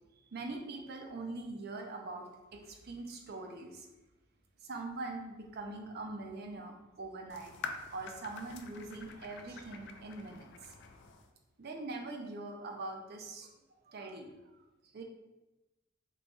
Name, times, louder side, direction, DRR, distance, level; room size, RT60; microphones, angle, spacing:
voice 1, 0.2-3.9 4.6-7.6 7.9-10.7 11.6-13.5 13.9-14.3 14.9-15.0, right 2 dB, 50° right, 2 dB, 0.5 m, -43 dB
sound 1, 7.3-11.3, left 5 dB, 60° left, 0.3 m, -47 dB
3.1 x 2.2 x 4.0 m, 1.0 s
head